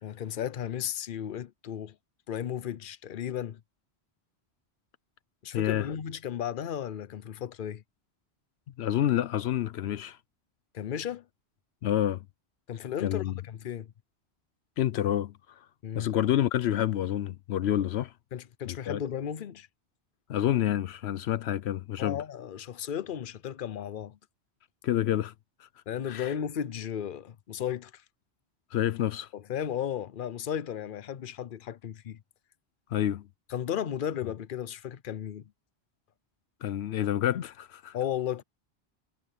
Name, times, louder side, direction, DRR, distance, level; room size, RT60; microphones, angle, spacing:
voice 1, 0.0-2.0 2.3-3.6 5.4-7.8 10.7-11.2 12.7-13.9 15.8-16.1 18.3-19.7 22.0-24.2 25.9-28.0 29.3-32.2 33.5-35.4 37.9-38.4, left 9 dB, 55° left, 0.9 m, -34 dB
voice 2, 5.5-5.9 8.8-10.2 11.8-12.2 13.0-13.4 14.8-15.3 15.9-18.1 18.7-19.0 20.3-22.2 24.8-25.3 26.0-26.3 28.7-29.3 32.9-33.2 36.6-38.0, left 11 dB, 80° left, 0.9 m, -28 dB
omnidirectional pair, 1.1 m